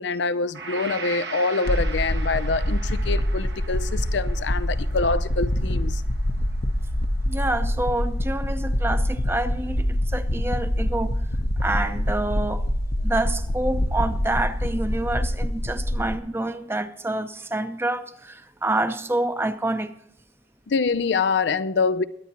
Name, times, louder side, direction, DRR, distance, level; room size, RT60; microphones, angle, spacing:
voice 1, 0.0-6.0 20.7-22.0, left 4 dB, 75° left, 0.5 m, -25 dB
Gong, 0.5-8.6, right 4 dB, 65° right, 1.3 m, -40 dB
sound 1, 1.7-16.2, left 1 dB, 60° left, 0.9 m, -25 dB
voice 2, 7.3-11.1 11.6-12.6 13.0-19.9, right 2 dB, 15° right, 0.7 m, -27 dB
22.5 x 9.6 x 3.0 m
head